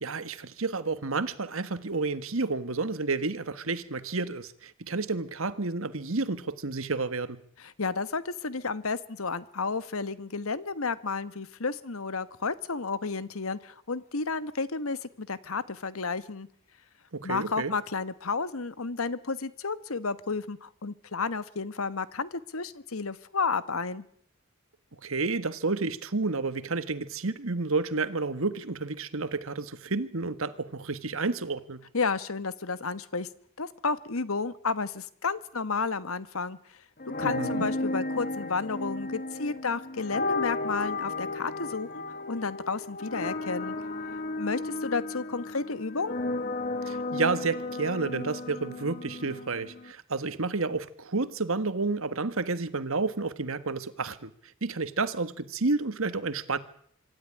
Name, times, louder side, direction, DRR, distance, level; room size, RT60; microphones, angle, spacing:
voice 1, 0.0-7.4 17.1-17.7 25.0-31.8 37.2-37.7 46.8-54.3 54.6-56.6, right 3 dB, 75° right, 1.5 m, -30 dB
voice 2, 7.6-16.5 17.2-24.0 31.9-33.3 33.6-36.6 37.2-43.7 44.4-46.2, left 4 dB, 80° left, 1.3 m, -32 dB
sound 1, 37.0-49.9, left 2 dB, 40° left, 1.9 m, -34 dB
25.5 x 13.0 x 9.9 m
head